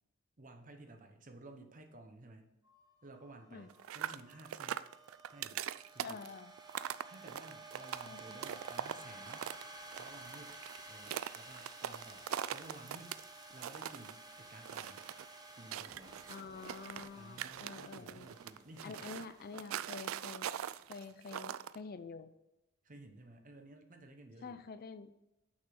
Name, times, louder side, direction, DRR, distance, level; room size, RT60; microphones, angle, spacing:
voice 1, 0.4-2.5 3.0-4.8 5.3-5.6 5.9-6.2 6.8-9.4 9.9-10.6 10.9-13.2 13.5-15.1 15.5-16.2 17.1-19.2 22.8-24.7, right 2 dB, 40° right, 5 dB, 1.0 m, -55 dB
sound 1, 2.6-21.0, right 2 dB, 20° right, 1.2 m, -54 dB
sound 2, 3.7-9.6 9.9-13.2 13.5-14.1 14.6-15.2 15.7-17.1 17.4-21.8, right 10 dB, 85° right, 0.3 m, -42 dB
voice 2, 6.0-6.5 8.1-8.4 16.3-18.3 18.8-20.5 20.9-22.3 24.4-25.1, left 5 dB, 50° left, 12 dB, 0.5 m, -48 dB
6.4 x 5.9 x 5.9 m, 0.97 s
head